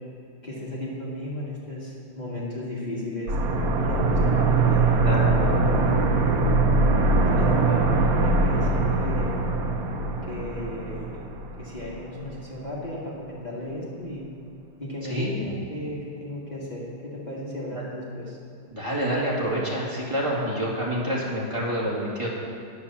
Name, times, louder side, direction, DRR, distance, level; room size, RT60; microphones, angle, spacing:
voice 1, 0.4-3.4 3.8-6.5 7.2-9.4 10.2-11.2 11.6-14.2 14.8-18.4, left 1 dB, 20° left, -7 dB, 1.9 m, -34 dB
sound 1, 3.3-12.0 12.3-12.4, right 3 dB, 55° right, 1.2 m, -22 dB
voice 2, 18.7-22.3, equal, 15° right, -6 dB, 2.3 m, -27 dB
9.7 x 7.1 x 7.2 m, 2.5 s
omnidirectional pair, 2.2 m